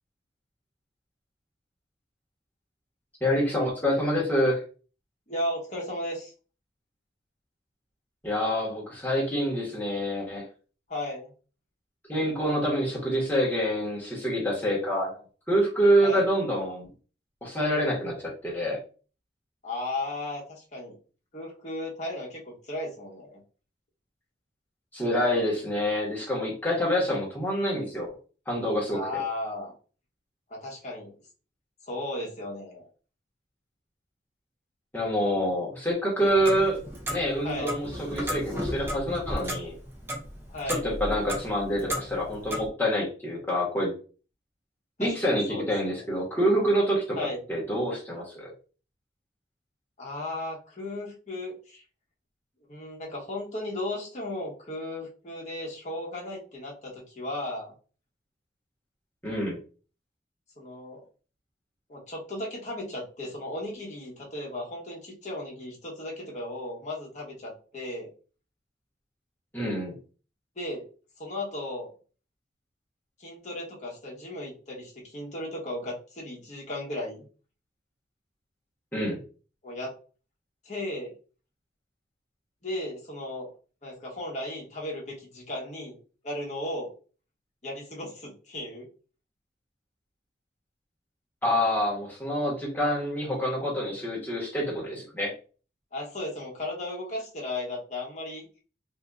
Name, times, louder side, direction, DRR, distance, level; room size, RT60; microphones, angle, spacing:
voice 1, 3.2-4.6 8.2-10.5 12.1-15.1 15.5-16.9 17.4-18.2 18.4-18.8 24.9-28.1 28.5-29.0 34.9-36.8 37.1-39.7 40.7-43.9 45.0-47.2 47.5-48.5 59.2-59.6 69.5-70.0 78.9-79.2 91.4-95.3, equal, 10° left, -5 dB, 1.4 m, -26 dB
voice 2, 5.3-6.3 10.9-11.3 16.0-16.2 19.6-21.0 21.3-23.4 28.9-29.7 30.5-31.1 31.9-32.9 37.4-37.8 40.5-40.9 45.0-46.0 47.2-47.4 50.0-51.8 52.7-57.7 60.6-61.0 61.9-68.1 70.6-70.9 71.2-71.9 73.2-77.2 79.6-80.0 80.6-81.1 82.6-83.5 83.8-86.0 86.2-86.9 87.6-88.9 95.9-98.5, left 1 dB, 40° left, -3 dB, 1.2 m, -35 dB
Clock, 36.2-42.7, equal, 10° right, 0.7 m, -35 dB
2.7 x 2.7 x 3.5 m, 0.38 s
head